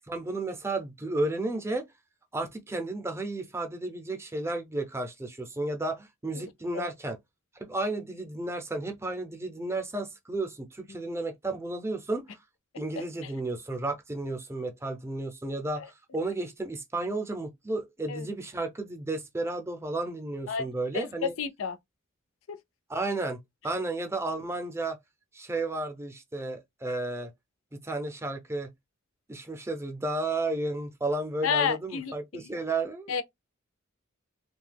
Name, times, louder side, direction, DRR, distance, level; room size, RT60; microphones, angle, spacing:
voice 1, 0.1-1.8 2.3-7.2 7.6-12.2 12.8-21.3 22.9-23.4 23.6-25.0 25.3-27.3 27.8-28.7 29.3-33.1, right 2 dB, 15° right, 0.5 m, -32 dB
voice 2, 20.9-21.8 22.5-22.6 31.4-32.5 33.1-33.2, left 6 dB, 80° left, 0.5 m, -31 dB
2.7 x 2.2 x 3.3 m
head